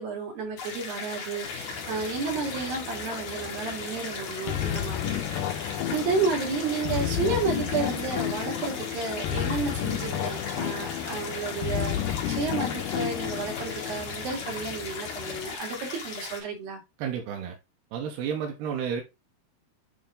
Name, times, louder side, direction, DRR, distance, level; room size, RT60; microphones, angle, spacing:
voice 1, 0.0-5.6 5.9-16.8, right 4 dB, 65° right, 3.9 m, -32 dB
sound 1, 0.6-16.4, left 4 dB, 50° left, 1.9 m, -38 dB
sound 2, 1.4-15.6, left 7 dB, 65° left, 2.3 m, -41 dB
sound 3, 4.5-14.0, left 11 dB, 80° left, 2.1 m, -31 dB
voice 2, 17.0-17.6 17.9-19.0, right 7 dB, 90° right, 2.9 m, -31 dB
9.1 x 3.1 x 3.8 m
omnidirectional pair, 4.5 m